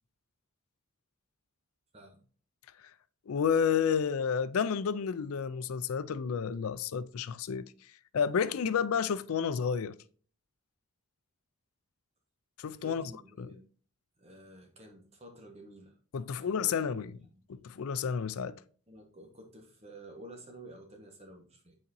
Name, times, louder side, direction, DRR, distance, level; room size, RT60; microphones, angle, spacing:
voice 1, 3.3-7.7 8.1-10.0 12.6-13.1 13.4-13.5 16.1-17.2 17.5-18.6, left 7 dB, 75° left, 0.4 m, -30 dB
voice 2, 12.8-13.7 14.2-16.0 16.3-16.6 16.9-17.1 17.3-17.4 18.9-21.8, right 1 dB, 30° right, 1.2 m, -51 dB
9.5 x 4.2 x 2.6 m
head